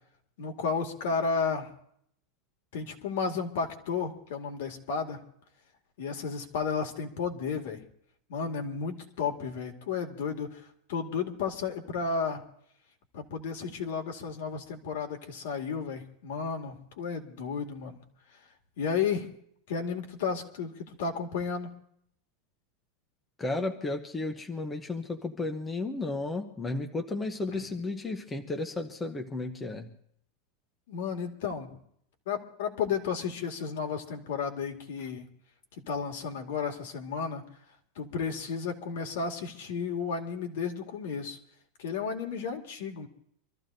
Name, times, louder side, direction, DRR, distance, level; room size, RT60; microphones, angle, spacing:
voice 1, 0.4-1.7 2.7-5.2 6.0-7.8 8.3-12.4 13.1-18.0 18.8-19.3 19.7-21.7 27.5-27.6 30.9-31.8 32.3-35.3 35.8-37.4 38.0-41.4 41.8-43.1, left 5 dB, 65° left, 3 dB, 2.1 m, -33 dB
voice 2, 23.4-29.9, left 2 dB, 10° left, 4 dB, 0.8 m, -33 dB
26.0 x 14.0 x 2.6 m, 0.69 s
supercardioid pair, 175°, 0 cm